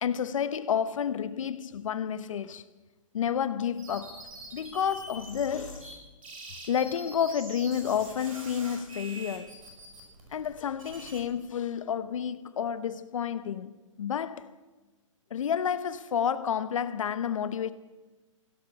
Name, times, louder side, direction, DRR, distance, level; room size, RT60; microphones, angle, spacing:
voice 1, 0.0-2.6 3.1-4.2 4.5-5.9 6.7-9.5 10.3-14.5 15.3-17.7, left 8 dB, 75° left, 0.8 m, -30 dB
sound 1, 3.8-5.9 6.2-11.2, right 2 dB, 85° right, 5.7 m, -45 dB
16.0 x 11.5 x 7.1 m
hypercardioid pair, 140°, 17 cm